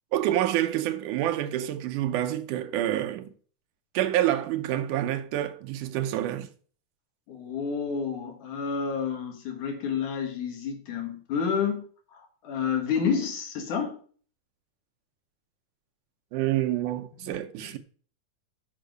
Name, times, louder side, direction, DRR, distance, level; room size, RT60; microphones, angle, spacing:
voice 1, 0.1-3.3 3.9-6.5 16.3-17.8, right 13 dB, 85° right, 2.3 m, -27 dB
voice 2, 7.3-11.8 12.1-14.0 17.2-17.3 17.6-17.7, left 6 dB, 75° left, 3.0 m, -30 dB
7.5 x 5.8 x 6.5 m
omnidirectional pair, 3.6 m